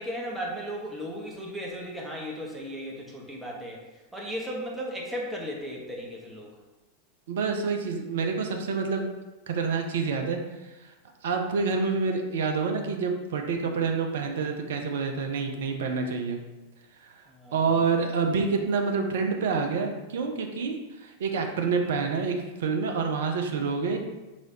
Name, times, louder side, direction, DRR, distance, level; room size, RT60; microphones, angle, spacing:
voice 1, 0.0-3.8 4.1-6.5 17.3-17.6, equal, 5° right, -3 dB, 1.0 m, -35 dB
voice 2, 7.3-9.0 9.5-10.4 11.2-16.4 17.0-17.1 17.5-24.0, right 5 dB, 60° right, 4 dB, 0.5 m, -27 dB
4.8 x 3.0 x 2.8 m, 1.1 s
figure-of-eight pair, 90°, 0 cm